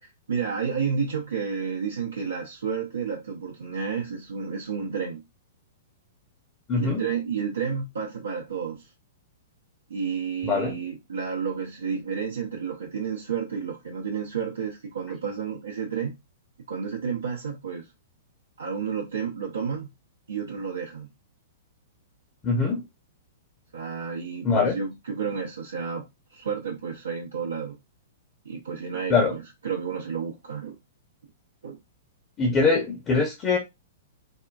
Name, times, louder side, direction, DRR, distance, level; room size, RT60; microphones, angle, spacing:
voice 1, 0.0-5.2 6.7-8.9 9.9-16.1 16.7-17.9 18.6-19.9 20.3-21.1 23.7-27.8 28.4-30.8 31.6-31.8, right 6 dB, 70° right, 0.7 m, -31 dB
voice 2, 6.7-7.0 10.4-10.8 22.4-22.8 24.4-24.8 29.1-29.3 32.4-33.6, left 4 dB, 25° left, 0.8 m, -22 dB
3.6 x 2.2 x 2.5 m
figure-of-eight pair, 105°, 0 cm